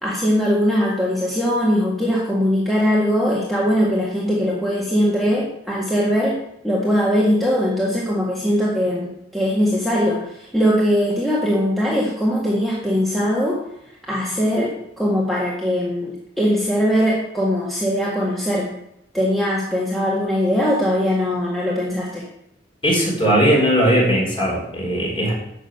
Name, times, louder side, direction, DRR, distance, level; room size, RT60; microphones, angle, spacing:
voice 1, 0.0-6.4 6.6-13.6 14.1-18.7 19.1-22.3, equal, ahead, -5 dB, 1.8 m, -20 dB
voice 2, 22.8-25.3, equal, 30° left, -2 dB, 4.5 m, -18 dB
12.5 x 6.3 x 8.0 m, 0.78 s
head